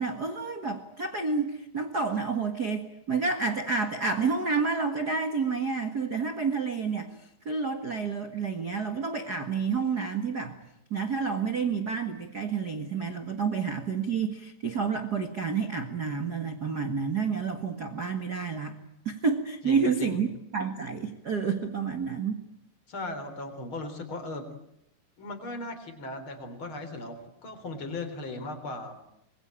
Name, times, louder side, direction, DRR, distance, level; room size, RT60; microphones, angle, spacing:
voice 1, 0.0-7.2 7.4-10.6 10.9-18.8 19.0-20.3 20.5-22.4, right 5 dB, 85° right, 7 dB, 0.8 m, -29 dB
voice 2, 19.6-20.2 22.9-24.5 25.2-29.0, left 2 dB, 30° left, 8 dB, 4.0 m, -37 dB
26.0 x 22.0 x 8.9 m, 0.80 s
omnidirectional pair, 5.0 m